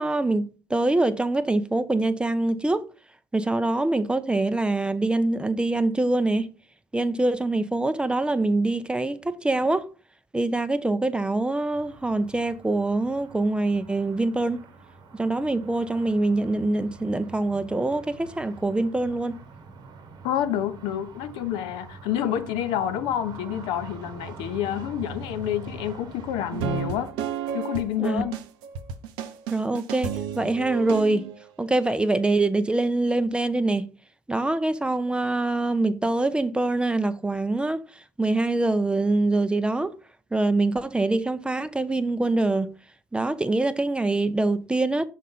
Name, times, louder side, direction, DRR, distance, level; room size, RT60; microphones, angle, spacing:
voice 1, 0.0-2.9 3.3-6.5 6.9-9.9 10.3-14.6 15.1-19.4 28.0-28.2 29.5-31.3 31.6-33.9 34.3-37.8 38.2-39.9 40.3-42.7 43.1-45.1, right 2 dB, 10° right, 0.5 m, -24 dB
sound 1, 11.7-27.1, right 3 dB, 50° right, 1.0 m, -44 dB
voice 2, 20.2-27.1 27.5-28.4, left 10 dB, 65° left, 0.7 m, -28 dB
sound 2, 26.5-31.4, right 7 dB, 70° right, 0.7 m, -32 dB
6.4 x 4.2 x 3.8 m
hypercardioid pair, 65°, 9 cm